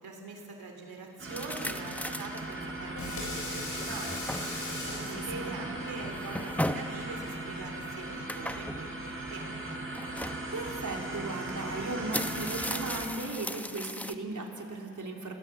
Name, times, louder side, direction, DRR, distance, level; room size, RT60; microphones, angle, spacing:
voice 1, 0.0-4.2 5.1-9.5, right 3 dB, 90° right, 2 dB, 3.8 m, -43 dB
sound 1, 1.2-13.1, right 2 dB, 35° right, 5.5 m, -38 dB
sound 2, 1.3-2.5 3.1-3.2 3.7-4.9 6.0-7.0 8.3-8.9 9.9-10.4 11.5-11.6 11.9-14.1, left 1 dB, 5° left, 0.9 m, -36 dB
Water tap faucet / Sink (filling or washing), 2.7-8.2, left 2 dB, 90° left, 7.5 m, -41 dB
voice 2, 4.9-5.5 10.5-15.3, right 2 dB, 55° right, 0 dB, 3.6 m, -37 dB
28.5 x 18.0 x 7.8 m, 2.6 s
cardioid pair, 65°, 35 cm